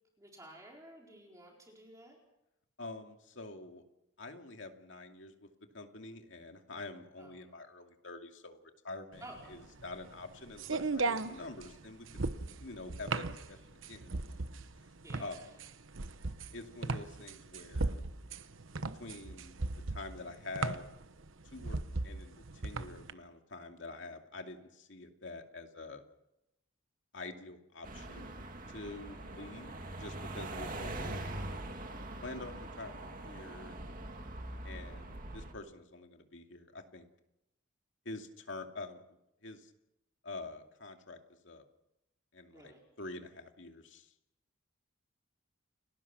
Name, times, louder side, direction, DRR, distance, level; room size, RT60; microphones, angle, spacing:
voice 1, 0.2-2.2 7.2-7.4 9.2-9.6 15.0-15.6 42.5-42.8, right 1 dB, 15° right, -1 dB, 4.4 m, -53 dB
voice 2, 2.8-3.8 4.2-5.5 5.7-12.1 12.6-14.5 15.2-15.6 16.5-18.0 18.8-19.5 19.9-20.8 21.5-26.0 27.1-28.3 28.7-31.4 32.2-33.7 34.6-37.1 38.0-39.0 39.4-39.7 40.2-41.6 42.3-44.1, left 2 dB, 65° left, 4 dB, 2.5 m, -46 dB
sound 1, 9.2-23.1, right 3 dB, 75° right, 1.0 m, -37 dB
sound 2, 27.8-35.5, right 1 dB, 45° right, 2.4 m, -43 dB
30.0 x 19.0 x 6.1 m, 0.85 s
head